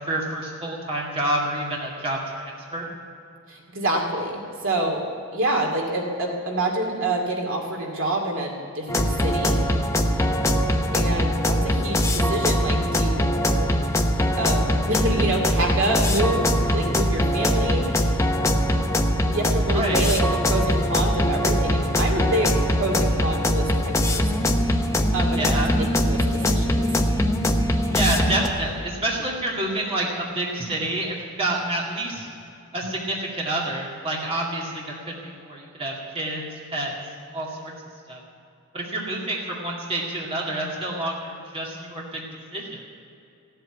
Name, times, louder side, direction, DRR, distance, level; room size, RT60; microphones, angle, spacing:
voice 1, 0.1-2.9 19.7-20.0 25.4-25.7 27.9-32.3 32.7-36.5 36.7-36.9 37.3-37.7 38.1-38.2 38.7-42.2 42.5-42.8, right 1 dB, 25° right, -3 dB, 2.2 m, -28 dB
voice 2, 3.5-5.0 5.3-9.6 10.9-13.2 14.4-18.2 19.2-24.5 25.1-27.0, right 1 dB, 65° right, 1 dB, 2.3 m, -27 dB
sound 1, 8.9-28.5, equal, 15° left, 0.8 m, -22 dB
15.5 x 8.1 x 9.9 m, 2.7 s
head